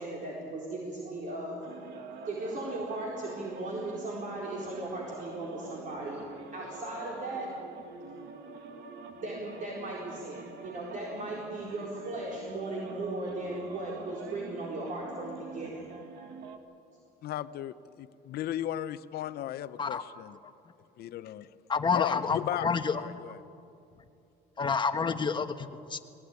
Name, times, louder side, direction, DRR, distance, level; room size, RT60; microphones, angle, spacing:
voice 1, 0.0-1.6 2.3-6.2 6.5-7.5 9.1-15.9, right 2 dB, 50° right, -3 dB, 4.2 m, -37 dB
sound 1, 1.6-16.6, right 5 dB, 85° right, 1.9 m, -46 dB
voice 2, 17.2-20.4 21.0-21.5 21.9-23.4, left 12 dB, 70° left, 13 dB, 0.9 m, -36 dB
voice 3, 21.7-23.0 24.6-26.0, left 5 dB, 30° left, 8 dB, 1.3 m, -29 dB
20.5 x 18.5 x 9.7 m, 2.6 s
cardioid pair, 110°, 17 cm